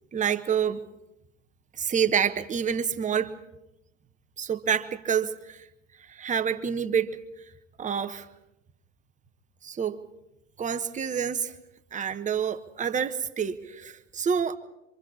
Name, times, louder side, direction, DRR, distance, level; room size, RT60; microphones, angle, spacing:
voice 1, 0.1-0.8 1.8-3.3 4.4-5.6 6.1-7.2 7.8-8.2 9.6-10.0 10.6-11.5 11.9-14.6, right 7 dB, 20° right, 9 dB, 1.2 m, -27 dB
26.5 x 25.0 x 4.3 m, 0.88 s
figure-of-eight pair, 85°, 36 cm